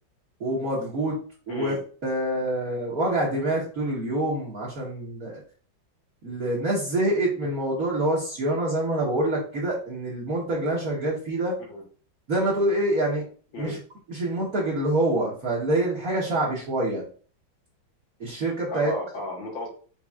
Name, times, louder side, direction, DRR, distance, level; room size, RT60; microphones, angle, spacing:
voice 1, 0.4-1.2 1.5-1.7 2.0-5.4 6.2-11.6 12.3-13.2 13.6-13.8 14.1-17.0 18.2-18.9, right 1 dB, 50° right, -6 dB, 1.4 m, -26 dB
voice 2, 1.5-1.8 6.2-6.4 11.6-11.8 13.5-13.7 18.7-19.7, left 2 dB, 85° left, -1 dB, 2.3 m, -34 dB
5.8 x 3.3 x 2.3 m, 0.41 s
omnidirectional pair, 2.1 m